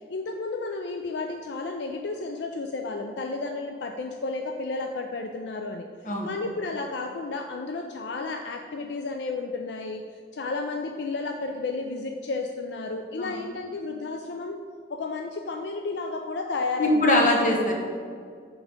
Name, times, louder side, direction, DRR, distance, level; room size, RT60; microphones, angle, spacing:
voice 1, 0.1-5.9 6.2-10.0 10.3-14.6 14.9-17.4, left 3 dB, 75° left, 4 dB, 0.4 m, -32 dB
voice 2, 16.8-17.7, left 1 dB, 45° left, -1 dB, 1.2 m, -22 dB
7.3 x 4.7 x 5.1 m, 2.1 s
head